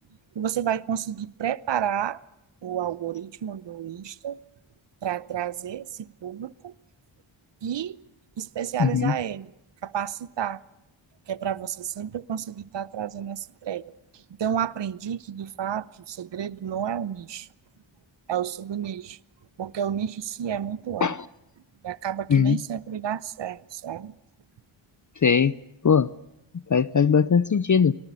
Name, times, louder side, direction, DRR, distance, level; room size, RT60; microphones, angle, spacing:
voice 1, 0.3-2.2 2.6-4.4 5.0-6.7 7.6-8.0 8.4-9.5 9.8-10.6 11.3-17.5 18.3-19.2 19.6-21.1 21.8-24.2, right 9 dB, 60° right, 0.9 m, -31 dB
voice 2, 8.8-9.1 21.0-21.2 22.3-22.6 25.2-25.5 25.8-26.1 26.7-27.9, left 6 dB, 35° left, 0.8 m, -19 dB
24.5 x 19.0 x 8.4 m
cardioid pair, 55°, 50 cm